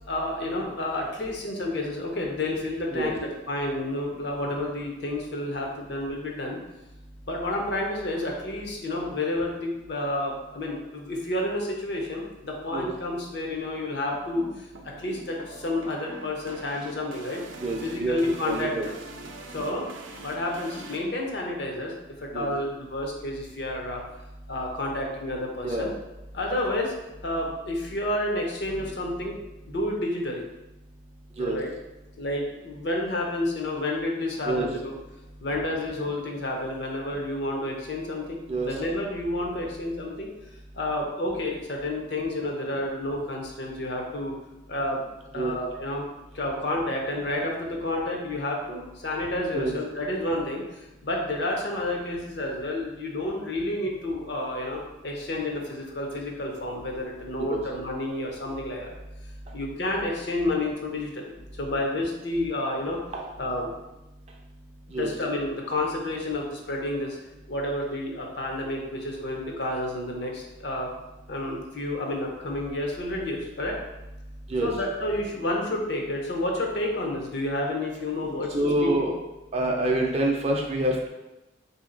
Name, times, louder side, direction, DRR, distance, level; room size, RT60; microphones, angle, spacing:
voice 1, 0.0-6.6 7.3-17.4 17.8-18.8 19.5-19.9 20.2-21.9 22.2-24.0 24.5-25.9 26.3-26.9 27.2-29.4 29.7-30.4 31.4-31.7 32.2-34.9 35.4-40.3 40.7-44.3 44.7-45.0 45.3-46.1 46.3-58.9 59.5-63.0 63.4-63.8 64.9-67.2 67.5-70.9 71.3-73.8 74.6-78.6 78.8-79.1, left 1 dB, 60° left, 0 dB, 0.7 m, -30 dB
sound 1, 14.1-21.0, right 2 dB, 80° right, 0.5 m, -43 dB
voice 2, 17.6-18.9 22.3-22.5 25.6-25.9 28.8-28.9 31.4-31.6 34.4-34.7 38.5-38.8 45.3-45.6 49.5-49.7 57.4-57.6 63.1-63.3 64.9-65.1 74.5-74.7 78.5-79.1 79.5-81.1, right 1 dB, 35° right, 0 dB, 0.5 m, -27 dB
3.6 x 2.8 x 3.8 m, 0.98 s
head